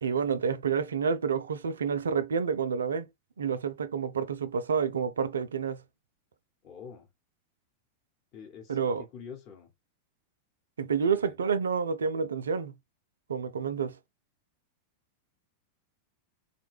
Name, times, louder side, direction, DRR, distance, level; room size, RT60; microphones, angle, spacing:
voice 1, 0.0-3.1 3.4-5.8 8.7-9.1 10.8-12.8 13.3-13.9, right 6 dB, 70° right, 0.3 m, -29 dB
voice 2, 6.6-7.1 8.3-8.8 9.1-9.7 11.1-11.3, left 6 dB, 40° left, 0.9 m, -46 dB
3.1 x 2.2 x 3.2 m
figure-of-eight pair, 90°, 0 cm